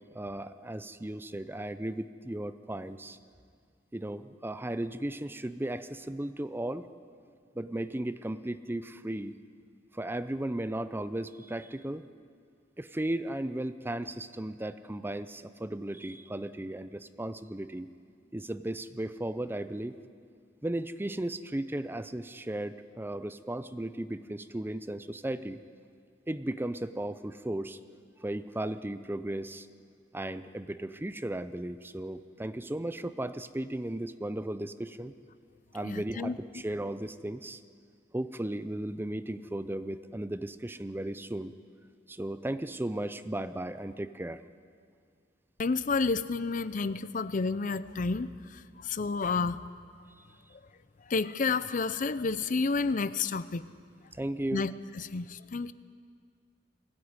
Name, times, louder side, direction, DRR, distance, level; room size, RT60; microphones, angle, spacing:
voice 1, 0.1-3.2 3.9-6.9 7.5-9.4 9.9-12.1 12.8-17.9 18.3-20.0 20.6-25.6 26.3-27.8 28.2-29.7 30.1-35.1 35.7-37.6 38.1-41.5 42.1-44.4 54.1-54.7, right 1 dB, 10° right, 0.5 m, -35 dB
voice 2, 35.8-36.4 45.6-48.3 48.8-49.6 51.1-53.7 54.5-55.7, left 4 dB, 45° left, 0.6 m, -30 dB
21.5 x 16.0 x 9.6 m
head